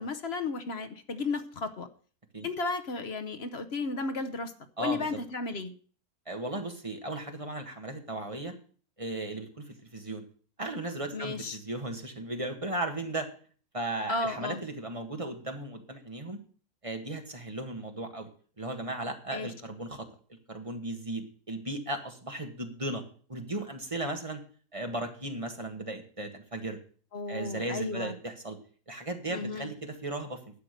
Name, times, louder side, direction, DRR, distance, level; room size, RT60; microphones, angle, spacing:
voice 1, 0.0-1.9 2.4-4.5 4.8-5.7 11.1-11.6 14.1-14.6 19.3-19.5 27.1-28.1 29.3-29.7, left 3 dB, 50° left, 9 dB, 1.0 m, -33 dB
voice 2, 4.8-5.2 6.3-8.5 9.0-10.2 10.6-13.3 13.7-16.4 16.8-18.3 18.6-23.0 23.3-24.4 24.7-26.8 27.3-28.6 28.9-30.4, right 2 dB, 25° right, 4 dB, 1.5 m, -36 dB
12.0 x 7.7 x 6.5 m, 0.43 s
omnidirectional pair, 1.5 m